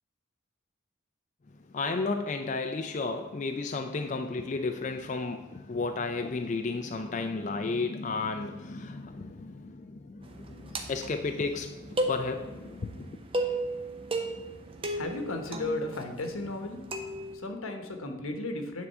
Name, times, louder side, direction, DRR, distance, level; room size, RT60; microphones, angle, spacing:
voice 1, 1.7-13.2, left 3 dB, 35° left, 0.4 m, -33 dB
sound 1, 10.2-17.4, right 1 dB, 25° right, 0.7 m, -35 dB
voice 2, 14.9-16.8 17.4-18.9, left 2 dB, 85° left, 1.2 m, -34 dB
9.5 x 3.7 x 6.6 m
head